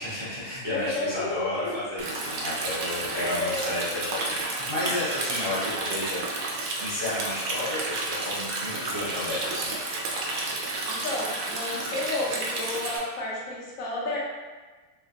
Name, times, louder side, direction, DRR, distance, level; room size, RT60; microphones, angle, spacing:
voice 1, 0.0-6.5 6.8-9.7, left 1 dB, 25° right, -10 dB, 0.7 m, -32 dB
voice 2, 0.7-1.4 3.1-3.7 10.9-14.2, left 2 dB, 80° left, -4 dB, 1.2 m, -31 dB
Stream, 2.0-13.0, right 2 dB, 90° right, 1.1 m, -31 dB
3.3 x 2.8 x 2.8 m, 1.3 s
omnidirectional pair, 1.4 m